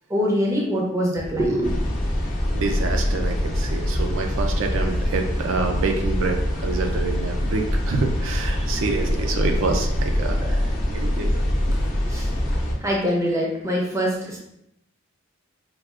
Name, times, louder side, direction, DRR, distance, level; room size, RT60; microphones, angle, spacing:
voice 1, 0.1-1.7 9.0-9.2 9.6-9.7 10.2-10.6 11.0-11.4 11.7-12.4 12.8-14.4, equal, 15° right, -2 dB, 0.5 m, -25 dB
sound 1, 1.6-12.7, left 1 dB, 40° left, 0.7 m, -24 dB
voice 2, 2.5-10.6 10.9-11.4, right 3 dB, 65° right, 3 dB, 0.4 m, -27 dB
4.6 x 2.3 x 2.4 m, 0.78 s
head